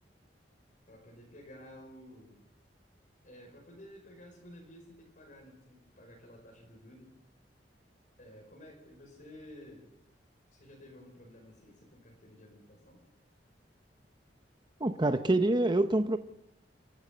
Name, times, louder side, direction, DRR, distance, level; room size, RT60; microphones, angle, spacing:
voice 1, 0.9-2.4 3.2-7.1 8.2-9.9 10.5-13.0, left 1 dB, 50° left, 5.3 m, -53 dB
voice 2, 14.8-16.2, right 2 dB, 25° right, 0.8 m, -26 dB
30.0 x 12.0 x 7.7 m
head